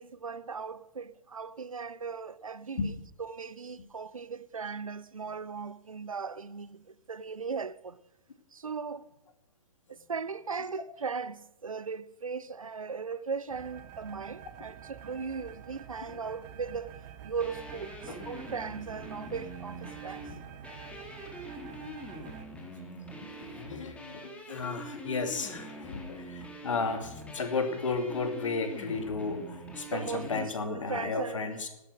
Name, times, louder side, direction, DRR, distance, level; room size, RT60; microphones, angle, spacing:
voice 1, 0.0-2.9 3.2-8.0 8.5-9.1 9.9-20.3 29.9-31.7, right 5 dB, 70° right, 0.8 m, -38 dB
sound 1, 13.5-22.5, right 9 dB, 35° right, 1.3 m, -48 dB
sound 2, 17.4-30.5, right 1 dB, 5° left, 3.1 m, -44 dB
voice 2, 23.4-31.7, left 4 dB, 60° left, 2.7 m, -33 dB
16.5 x 12.5 x 6.5 m
figure-of-eight pair, 115°, 18 cm